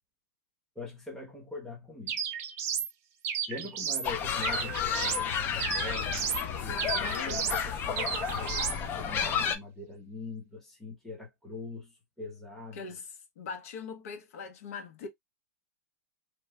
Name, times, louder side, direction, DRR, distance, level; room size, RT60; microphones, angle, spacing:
voice 1, 0.8-2.2 3.5-6.4 6.6-11.9 12.2-12.8, left 3 dB, 5° left, 0.8 m, -42 dB
sound 1, 2.1-2.9 3.2-4.1 4.4-5.3 5.6-6.4 6.8-7.6 8.0-8.8, right 8 dB, 30° right, 0.5 m, -33 dB
sound 2, 4.0-9.6, left 7 dB, 25° left, 0.4 m, -32 dB
voice 2, 6.9-7.6 12.7-15.1, left 5 dB, 60° left, 0.9 m, -42 dB
3.0 x 2.2 x 2.2 m
supercardioid pair, 150°, 9 cm